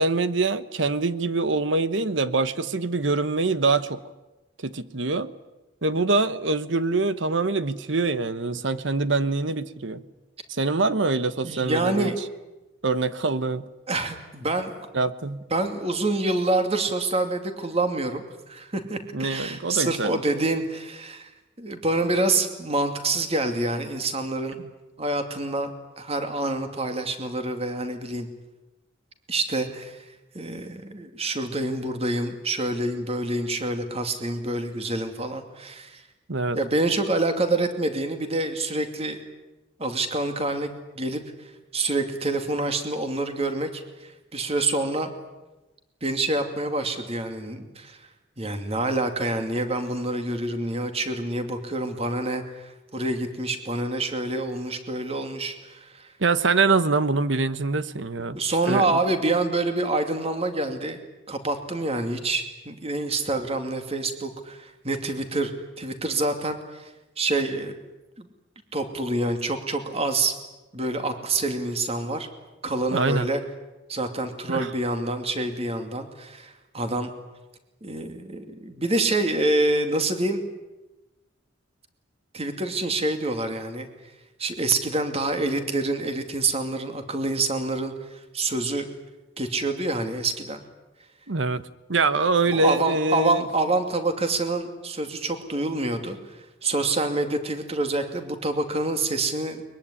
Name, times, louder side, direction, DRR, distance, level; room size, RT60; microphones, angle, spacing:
voice 1, 0.0-4.0 4.6-5.3 5.8-10.0 10.5-12.1 12.8-13.7 14.9-15.4 19.1-20.4 36.3-36.6 56.2-58.4 58.7-59.0 72.9-73.3 74.5-74.7 91.3-91.6 91.9-93.4, right 3 dB, 65° right, 14 dB, 1.1 m, -24 dB
voice 2, 11.4-12.1 13.9-14.7 15.5-21.3 21.6-24.6 25.0-25.7 26.0-28.3 29.3-30.0 30.3-36.0 36.5-39.2 39.8-41.2 41.7-45.1 46.0-48.0 48.4-56.1 58.3-61.0 61.3-65.5 65.8-67.7 68.2-68.3 68.7-70.3 70.7-72.3 72.6-73.4 73.9-77.1 77.8-80.4 82.3-83.9 84.4-88.9 89.4-90.6 92.5-99.6, right 2 dB, 30° right, 7 dB, 2.6 m, -27 dB
22.5 x 22.0 x 10.0 m, 1.1 s
head